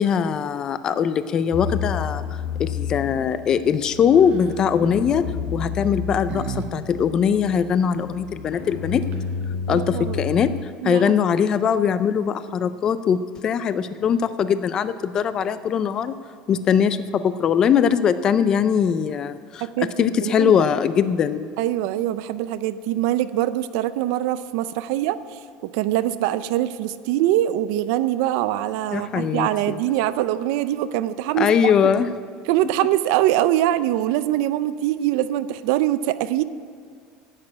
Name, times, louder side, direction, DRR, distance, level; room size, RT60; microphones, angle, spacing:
voice 1, 0.0-2.2 2.6-5.3 5.5-9.0 9.7-16.2 16.5-19.7 20.0-21.5 28.9-29.8 31.4-32.1, left 7 dB, 25° left, 13 dB, 0.4 m, -21 dB
sound 1, 1.5-10.6, left 7 dB, 75° left, 1.0 m, -31 dB
sound 2, 4.2-4.6 5.6-6.7 7.0-7.1 8.7-8.8 9.0-9.5, right 6 dB, 40° right, 0.9 m, -34 dB
voice 2, 9.7-10.3 10.8-11.1 19.6-20.5 21.6-25.4 25.7-31.7 32.5-36.4, right 13 dB, 65° right, 14 dB, 0.5 m, -23 dB
11.0 x 8.4 x 9.7 m, 2.1 s
cardioid pair, 180°, 3 cm